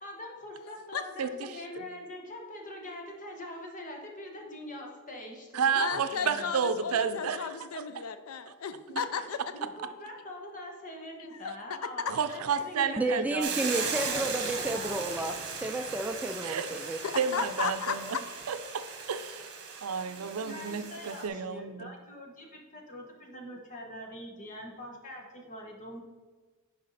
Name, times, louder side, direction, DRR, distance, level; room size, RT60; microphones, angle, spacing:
voice 1, 0.0-6.5 8.9-9.0 9.5-13.2 13.7-15.0 20.0-26.0, left 1 dB, 35° left, 1 dB, 1.4 m, -43 dB
voice 2, 0.7-1.0 5.7-9.5 11.3-12.2 17.0-18.2, left 6 dB, 75° left, 11 dB, 0.5 m, -35 dB
voice 3, 1.2-1.9 5.5-7.4 7.7-7.8 12.2-13.7 14.2-14.3 16.4-16.7 17.2-18.2 18.5-19.5 19.8-21.9, right 6 dB, 85° right, 10 dB, 0.5 m, -31 dB
voice 4, 13.0-17.0, right 1 dB, 5° right, 6 dB, 0.3 m, -32 dB
Hiss / Boiling, 13.4-21.3, right 5 dB, 55° right, 1.3 m, -37 dB
10.5 x 4.7 x 4.1 m, 1.4 s
head